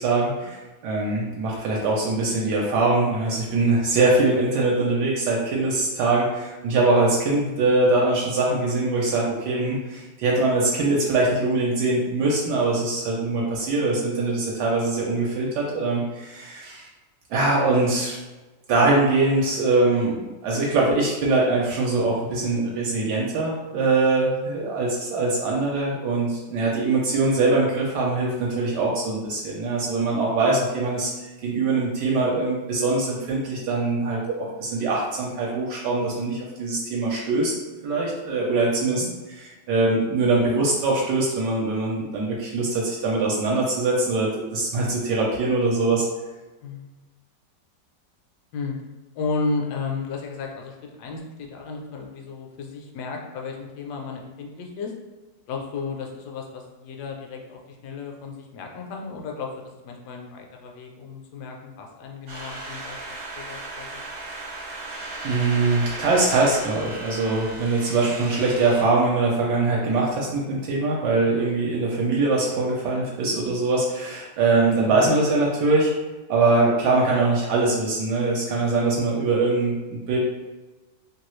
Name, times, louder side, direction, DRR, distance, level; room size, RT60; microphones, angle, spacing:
voice 1, 0.0-16.9 17.3-18.2 18.7-37.5 37.8-39.0 39.7-46.1 64.8-75.9 76.3-80.2, right 3 dB, 75° right, -3 dB, 1.1 m, -22 dB
voice 2, 13.8-14.2 24.2-24.4 30.5-30.7 38.8-39.1 46.6-47.0 48.5-48.7 49.1-54.9 55.5-63.0 63.4-64.0 74.9-75.1, left 4 dB, 75° left, 1 dB, 1.1 m, -34 dB
sound 1, 62.3-68.8, right 2 dB, 55° right, 0.9 m, -36 dB
3.0 x 2.3 x 3.0 m, 1.2 s
omnidirectional pair, 1.9 m